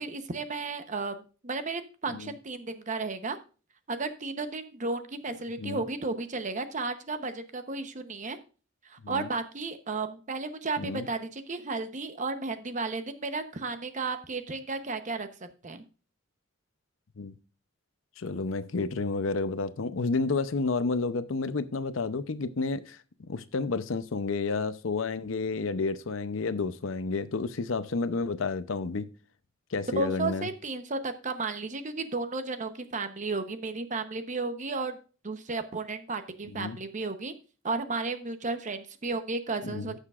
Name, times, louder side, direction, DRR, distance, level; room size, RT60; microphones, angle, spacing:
voice 1, 0.0-3.4 3.9-8.4 8.8-15.3 15.6-15.8 29.9-35.0 35.2-37.3 37.6-40.0, right 3 dB, 40° right, 0.9 m, -33 dB
voice 2, 18.2-23.0 23.3-29.1 29.7-30.5 36.5-36.8 39.6-39.9, left 4 dB, 85° left, 0.6 m, -30 dB
15.5 x 6.6 x 2.4 m
head